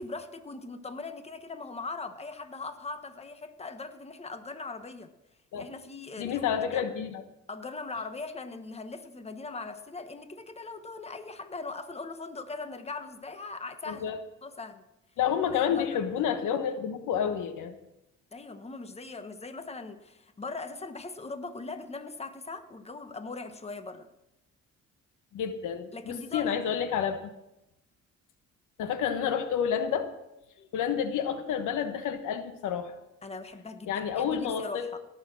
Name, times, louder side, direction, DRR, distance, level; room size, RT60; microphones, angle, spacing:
voice 1, 0.0-5.1 5.6-6.9 7.5-14.1 14.4-14.8 15.5-16.0 18.3-24.1 25.9-26.5 33.2-35.0, left 3 dB, 20° left, 9 dB, 1.2 m, -40 dB
voice 2, 6.2-7.2 13.9-14.2 15.2-17.7 25.3-27.3 28.8-30.1 30.7-32.9 33.9-34.9, left 8 dB, 85° left, 9 dB, 1.3 m, -29 dB
17.5 x 7.0 x 6.2 m, 0.90 s
cardioid pair, 90°, 30 cm